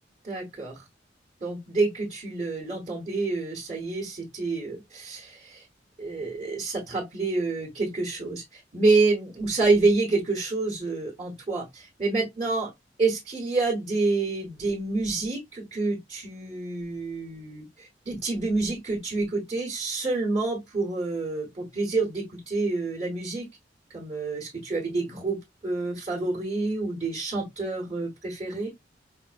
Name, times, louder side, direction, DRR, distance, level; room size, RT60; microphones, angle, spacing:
voice 1, 0.2-0.8 1.4-5.6 6.0-12.7 13.0-23.5 23.9-28.7, right 3 dB, 35° right, 1.2 m, -28 dB
5.3 x 2.1 x 2.5 m
head